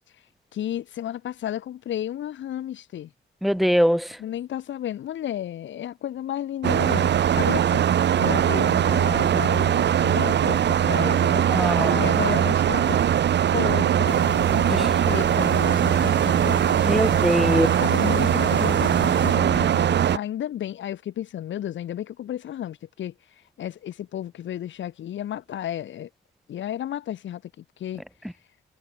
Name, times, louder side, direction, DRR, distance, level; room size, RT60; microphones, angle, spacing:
voice 1, 0.5-3.1 4.2-11.5 11.9-13.0 13.5-16.6 17.5-23.1 23.6-26.1 26.5-28.0, left 11 dB, 70° left, 3.4 m, -32 dB
voice 2, 3.4-4.1 11.5-12.0 16.8-17.7, equal, ahead, 2.1 m, -21 dB
sound 1, 6.6-20.2, right 9 dB, 60° right, 2.7 m, -21 dB
sound 2, 14.1-19.4, left 6 dB, 40° left, 3.1 m, -37 dB
cardioid pair, 90°, 20 cm